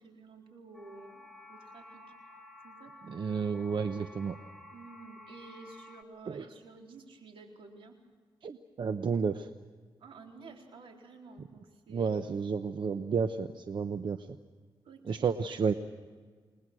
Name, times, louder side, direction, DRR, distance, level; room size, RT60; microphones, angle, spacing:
voice 1, 0.0-2.0 2.6-2.9 4.7-8.0 10.0-12.1 14.8-15.4, right 3 dB, 85° right, 2 dB, 4.2 m, -52 dB
sound 1, 0.7-6.0, left 1 dB, ahead, 1.6 m, -52 dB
voice 2, 3.0-4.4 6.3-6.5 8.4-9.5 11.9-14.3 15.0-15.7, right 5 dB, 60° right, 9 dB, 1.0 m, -31 dB
29.0 x 20.5 x 6.3 m, 1.5 s
cardioid pair, 85°, 9 cm